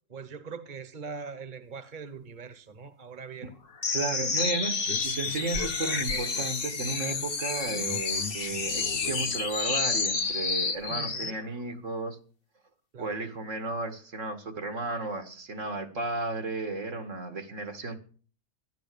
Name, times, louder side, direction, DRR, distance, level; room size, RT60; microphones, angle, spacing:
voice 1, 0.1-3.5 6.1-6.3 10.9-11.4 12.9-13.2, right 5 dB, 40° right, 1.4 m, -42 dB
sound 1, 3.8-11.4, left 5 dB, 45° left, 1.3 m, -30 dB
voice 2, 3.9-12.2 13.0-18.0, right 3 dB, 70° right, 2.2 m, -34 dB
13.5 x 11.5 x 6.8 m
omnidirectional pair, 1.3 m